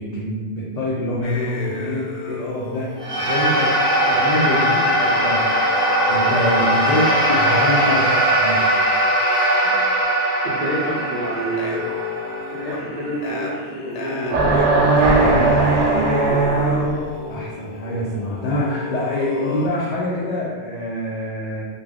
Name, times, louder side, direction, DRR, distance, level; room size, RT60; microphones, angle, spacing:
voice 1, 0.0-3.8 4.1-5.6 6.1-8.1 8.4-8.6 17.3-21.6, left 1 dB, 55° left, -7 dB, 0.5 m, -25 dB
sound 1, 1.2-8.8 9.6-9.9 10.5-19.7, left 3 dB, 80° left, 0.9 m, -33 dB
sound 2, 3.0-13.5, right 1 dB, 5° left, 0.8 m, -20 dB
voice 2, 10.4-11.8 12.5-16.6, right 1 dB, 55° right, -5 dB, 0.6 m, -28 dB
sound 3, 14.3-17.2, right 3 dB, 85° right, 0.9 m, -17 dB
2.4 x 2.2 x 3.3 m, 1.3 s
omnidirectional pair, 1.2 m